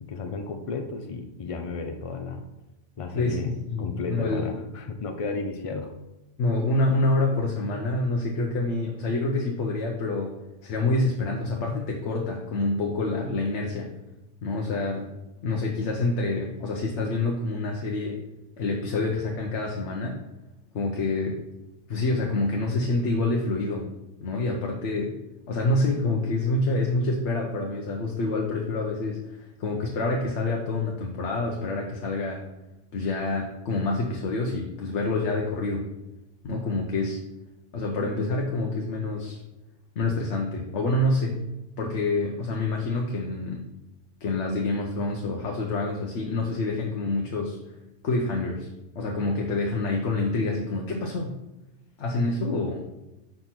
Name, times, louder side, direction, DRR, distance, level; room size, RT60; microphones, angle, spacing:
voice 1, 0.0-2.4 3.0-5.9, left 3 dB, 55° left, 5 dB, 0.3 m, -33 dB
voice 2, 3.1-4.4 6.4-13.9 14.4-15.1 15.4-18.2 18.6-20.2 20.7-21.4 21.9-23.9 24.2-25.2 25.5-32.4 32.9-35.9 36.4-37.2 37.7-39.4 40.0-41.4 41.8-43.7 44.2-47.6 48.0-48.7 48.9-51.4 52.0-52.8, left 2 dB, 70° left, 0 dB, 1.1 m, -27 dB
5.2 x 4.4 x 5.8 m, 0.99 s
omnidirectional pair, 1.3 m